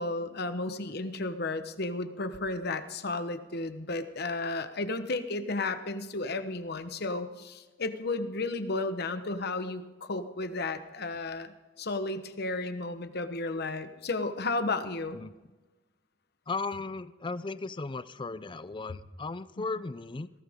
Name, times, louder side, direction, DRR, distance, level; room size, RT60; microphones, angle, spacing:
voice 1, 0.0-15.2, left 2 dB, 55° left, 9 dB, 1.1 m, -33 dB
voice 2, 16.5-20.3, left 3 dB, 25° left, 15 dB, 0.5 m, -36 dB
19.5 x 16.5 x 3.7 m, 1.2 s
head